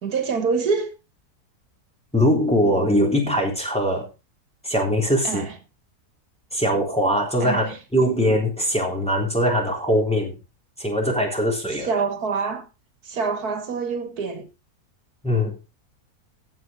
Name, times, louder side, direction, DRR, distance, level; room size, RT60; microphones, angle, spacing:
voice 1, 0.0-0.9 5.2-5.6 7.4-7.8 11.9-12.7 13.1-14.5, right 5 dB, 75° right, 1.9 m, -25 dB
voice 2, 2.1-4.1 4.6-5.4 6.5-7.6 7.9-10.4 10.8-11.9 15.2-15.6, equal, 5° left, 3.7 m, -21 dB
15.5 x 7.8 x 3.9 m
omnidirectional pair, 1.6 m